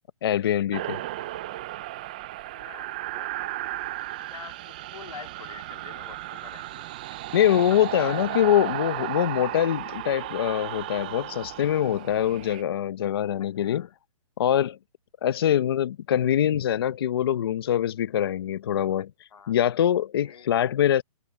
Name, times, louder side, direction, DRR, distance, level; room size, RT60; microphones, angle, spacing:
voice 1, 0.2-1.0 7.3-13.9 14.4-14.8 15.2-19.1 19.5-21.0, left 10 dB, 45° left, 0.8 m, -24 dB
sound 1, 0.7-12.6, right 15 dB, 15° right, 0.4 m, -35 dB
voice 2, 2.5-3.8 4.3-6.9 7.7-8.3 8.6-8.7 13.4-13.9 19.3-19.6 20.2-20.5, left 7 dB, 85° left, 3.1 m, -45 dB
hypercardioid pair, 170°, 18 cm